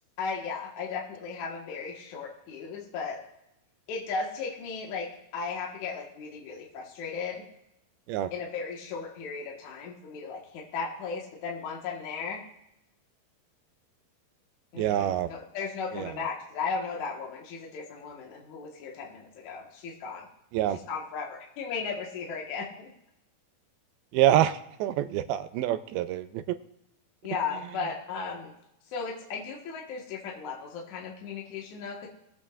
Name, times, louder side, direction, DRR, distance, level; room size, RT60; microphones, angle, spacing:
voice 1, 0.2-3.2 3.9-7.5 8.3-12.4 14.7-20.3 20.9-22.9 27.2-28.5 28.9-32.1, left 5 dB, 60° left, -1 dB, 2.6 m, -36 dB
voice 2, 14.8-15.3 15.9-16.1 20.5-20.8 24.1-26.6, right 12 dB, 90° right, 12 dB, 2.5 m, -26 dB
22.0 x 8.5 x 2.5 m, 0.84 s
omnidirectional pair, 4.3 m